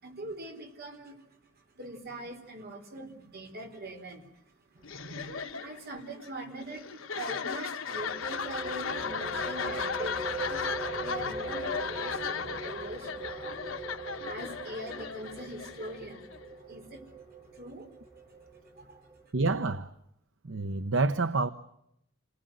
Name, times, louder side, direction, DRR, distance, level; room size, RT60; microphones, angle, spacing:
voice 1, 0.0-13.6 14.2-16.3 16.7-17.1 17.5-18.0 18.7-19.1, right 1 dB, 50° right, 4.1 m, -43 dB
sound 1, 4.8-16.5, left 6 dB, 80° left, 1.4 m, -36 dB
sound 2, 7.9-19.3, right 3 dB, 30° right, 3.8 m, -41 dB
voice 2, 19.3-19.9 20.4-21.5, right 3 dB, 70° right, 0.9 m, -28 dB
28.0 x 20.5 x 7.9 m
head